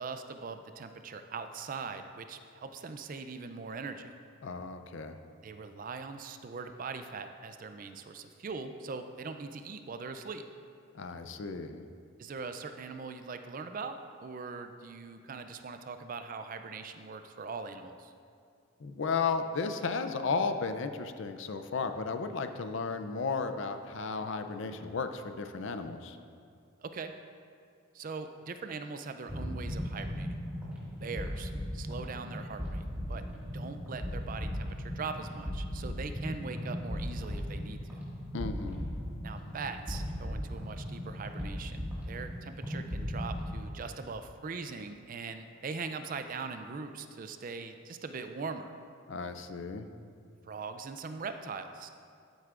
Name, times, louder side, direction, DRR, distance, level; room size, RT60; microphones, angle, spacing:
voice 1, 0.0-4.1 5.4-10.4 12.2-18.1 26.8-27.1 27.9-30.4 31.0-33.2 33.5-38.0 39.2-48.7 50.4-51.9, right 4 dB, 40° right, 8 dB, 0.4 m, -41 dB
voice 2, 4.4-5.2 10.9-11.8 18.8-26.2 38.3-38.8 49.1-49.9, left 4 dB, 55° left, 8 dB, 0.5 m, -34 dB
sound 1, 29.3-43.5, equal, 10° right, 1.8 m, -37 dB
13.5 x 8.0 x 2.5 m, 2.3 s
head